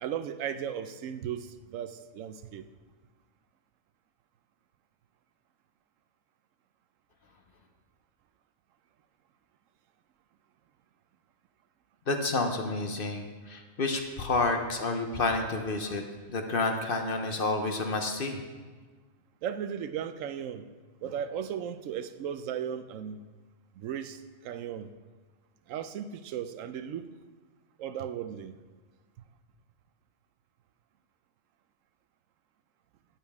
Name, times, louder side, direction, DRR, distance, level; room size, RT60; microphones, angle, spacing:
voice 1, 0.0-2.6 19.4-20.6 21.0-23.2 23.8-24.9 25.7-27.1 27.8-28.6, right 9 dB, 80° right, 11 dB, 0.9 m, -36 dB
voice 2, 12.1-16.0 16.3-18.4, left 3 dB, 50° left, 5 dB, 0.9 m, -29 dB
11.0 x 9.1 x 3.6 m, 1.3 s
omnidirectional pair, 1.3 m